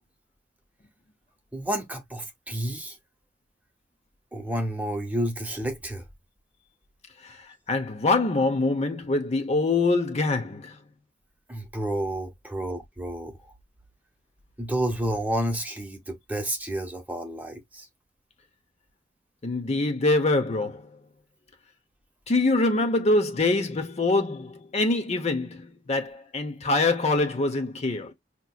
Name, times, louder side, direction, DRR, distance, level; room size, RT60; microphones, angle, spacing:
voice 1, 1.5-3.0 4.3-6.0 11.5-13.3 14.6-17.9, right 1 dB, 10° right, 1.0 m, -30 dB
voice 2, 7.2-10.8 19.4-20.9 22.3-28.1, left 2 dB, 40° left, 0.8 m, -24 dB
5.3 x 2.9 x 2.3 m
head